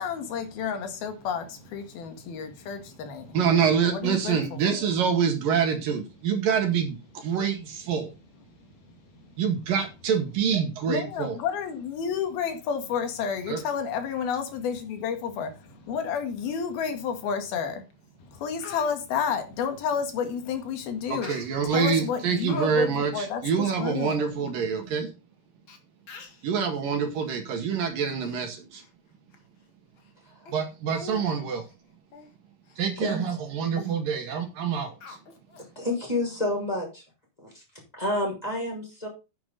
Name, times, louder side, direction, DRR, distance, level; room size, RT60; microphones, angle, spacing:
voice 1, 0.0-4.9 10.9-17.8 18.2-21.3 21.6-24.5, left 7 dB, 65° left, 3.5 m, -31 dB
voice 2, 3.3-8.1 9.4-11.4 13.5-13.6 21.1-25.1 26.4-28.8 30.5-31.6 32.8-35.2, right 6 dB, 60° right, 3.4 m, -26 dB
Speech, 17.9-18.0 18.3-18.9 21.2-21.8 22.2-22.7 23.0-23.2 23.7-23.8 24.0-24.2 24.9-25.0 25.7-25.8 26.1-26.5 27.1-27.3 27.8-28.4 28.7-28.9 29.3-29.4 30.0-30.1 30.5-30.6 30.9-31.3 31.6-31.7 32.1-32.3 32.7-32.8 33.2-33.4 33.7-33.9 35.0-35.7 36.1-36.2, left 5 dB, 50° left, 1.6 m, -44 dB
voice 3, 35.8-37.0 37.4-37.6 37.9-39.1, left 1 dB, 10° left, 6.0 m, -29 dB
10.5 x 8.5 x 4.0 m
omnidirectional pair, 4.8 m